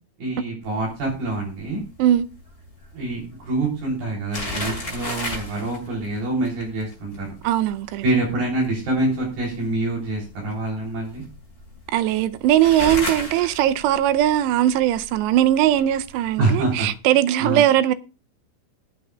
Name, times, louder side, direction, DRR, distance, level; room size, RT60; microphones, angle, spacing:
voice 1, 0.2-1.8 2.9-7.3 8.0-11.2 16.4-16.9 17.4-17.6, right 2 dB, 60° right, 5.1 m, -25 dB
sound 1, 0.6-16.9, left 1 dB, 15° left, 5.4 m, -36 dB
voice 2, 7.4-8.0 11.9-17.9, right 12 dB, 85° right, 2.8 m, -19 dB
20.0 x 8.6 x 2.3 m
omnidirectional pair, 4.9 m